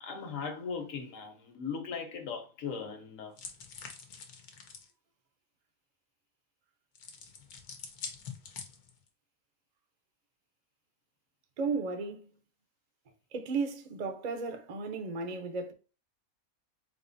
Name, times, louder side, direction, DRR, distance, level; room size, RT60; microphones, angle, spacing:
voice 1, 0.0-3.3, left 5 dB, 65° left, 1.3 m, -38 dB
sound 1, 3.4-4.9 7.0-9.1, left 6 dB, 85° left, 1.3 m, -45 dB
voice 2, 11.6-12.3 13.3-15.7, right 4 dB, 45° right, 0.5 m, -34 dB
4.2 x 3.6 x 2.6 m
omnidirectional pair, 1.5 m